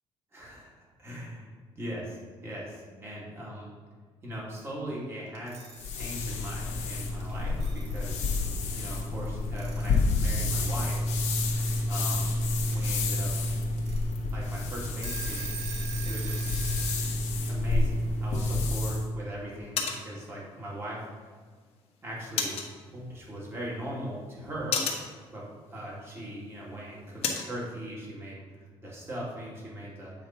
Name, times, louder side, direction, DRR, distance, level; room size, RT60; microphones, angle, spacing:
voice 1, 0.3-0.7 1.0-3.7 4.2-8.3 8.7-11.0 11.9-13.3 14.3-15.6 16.0-16.5 17.5-21.1 22.0-22.6 22.9-24.8 25.3-30.1, right 1 dB, 20° right, -5 dB, 2.2 m, -40 dB
Alarm / Clock, 5.3-6.1 7.3-7.4 7.6-8.4 9.6-10.2 11.6-11.7 12.5-12.9 13.3-13.4 13.8-14.0 14.5-14.6 14.9-17.0, right 4 dB, 70° right, 1.7 m, -40 dB
sound 1, 5.7-19.0, left 2 dB, 85° left, 1.3 m, -29 dB
sound 2, 18.1-27.6, left 5 dB, 60° left, 1.2 m, -38 dB
8.4 x 3.1 x 5.6 m, 1.5 s
cardioid pair, 120°, 11 cm